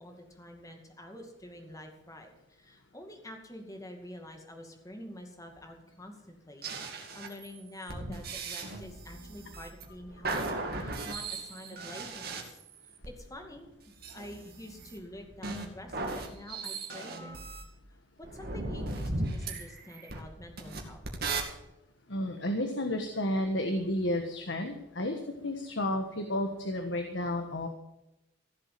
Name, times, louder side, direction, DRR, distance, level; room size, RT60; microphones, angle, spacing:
voice 1, 0.0-12.6 13.0-17.4 17.9-21.0, left 1 dB, 15° left, 3 dB, 2.3 m, -47 dB
sound 1, 6.6-13.1 14.0-17.6 18.2-21.4, right 3 dB, 55° right, 2.4 m, -37 dB
voice 2, 22.1-27.7, left 1 dB, 70° left, 5 dB, 1.5 m, -32 dB
15.5 x 7.6 x 7.6 m, 0.88 s
head